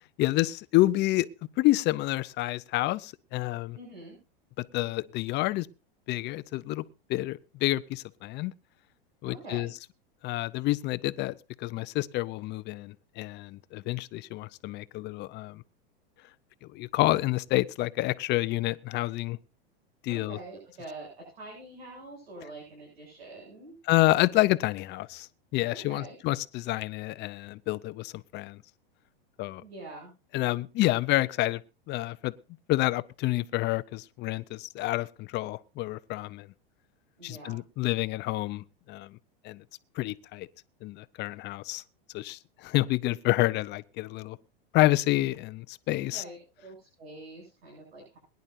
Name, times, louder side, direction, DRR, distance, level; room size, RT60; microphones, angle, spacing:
voice 1, 0.2-1.3 1.6-3.8 4.7-5.7 6.1-6.8 7.1-8.5 9.2-9.7 10.2-15.6 16.6-19.4 20.0-20.4 23.9-28.6 29.4-29.6 30.3-31.6 31.9-32.3 32.7-36.5 37.2-39.2 39.4-39.6 40.0-40.5 40.8-41.8 42.1-44.4 44.7-46.2, left 18 dB, 35° left, 0.7 m, -28 dB
voice 2, 3.7-4.2 9.2-9.7 20.1-23.8 25.7-26.2 29.6-30.1 37.2-37.6 46.0-48.2, right 2 dB, 85° right, 7.8 m, -45 dB
22.0 x 10.5 x 2.7 m
hypercardioid pair, 120°, 30 cm